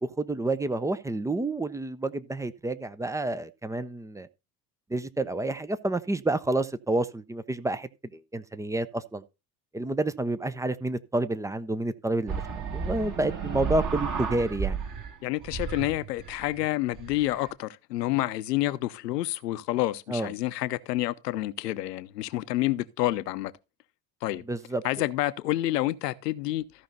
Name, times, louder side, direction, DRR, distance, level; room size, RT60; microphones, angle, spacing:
voice 1, 0.0-4.3 4.9-9.2 9.7-14.8 20.1-20.3 24.5-24.8, right 2 dB, 5° right, 0.4 m, -29 dB
sound 1, 12.3-15.2 15.4-17.5, right 6 dB, 40° right, 2.0 m, -33 dB
voice 2, 15.2-23.5 24.2-24.4 24.8-26.6, left 16 dB, 75° left, 0.7 m, -28 dB
14.0 x 5.5 x 4.0 m
figure-of-eight pair, 60°, 49 cm